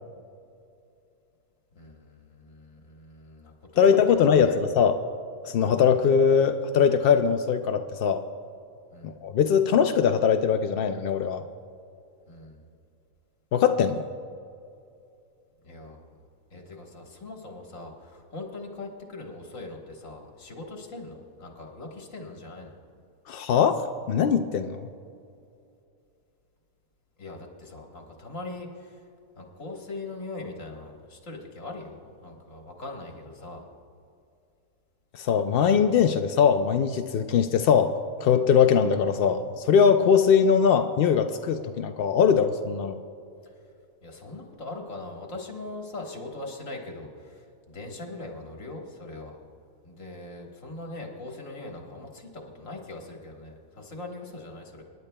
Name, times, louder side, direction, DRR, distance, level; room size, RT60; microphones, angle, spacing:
voice 1, 1.8-4.6 8.9-9.1 12.3-12.7 15.6-16.1 16.5-22.8 27.2-29.1 29.4-33.7 43.4-43.5 44.0-49.5 49.8-54.8, left 2 dB, 60° left, 0 dB, 1.9 m, -41 dB
voice 2, 3.8-5.0 5.4-8.2 9.0-11.4 13.5-14.0 23.3-24.9 35.1-37.9 38.2-43.0, left 7 dB, 80° left, 8 dB, 0.5 m, -21 dB
27.0 x 10.5 x 2.2 m, 2.5 s
omnidirectional pair, 1.5 m